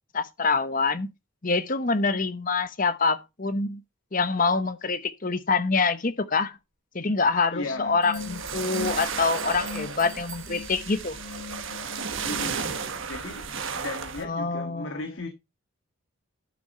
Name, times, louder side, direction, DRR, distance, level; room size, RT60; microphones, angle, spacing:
voice 1, 0.1-1.1 1.4-3.8 4.1-6.6 6.9-11.2 14.2-14.9, left 4 dB, 40° left, 0.9 m, -25 dB
voice 2, 7.5-8.0 12.2-12.6 13.1-13.5 13.7-15.3, left 2 dB, 65° left, 1.7 m, -35 dB
sound 1, 7.6-12.9, left 5 dB, 85° left, 0.6 m, -40 dB
sound 2, 8.0-11.7, right 8 dB, 35° right, 2.0 m, -46 dB
sound 3, 8.2-14.2, right 6 dB, 65° right, 1.3 m, -34 dB
12.0 x 6.0 x 4.2 m
head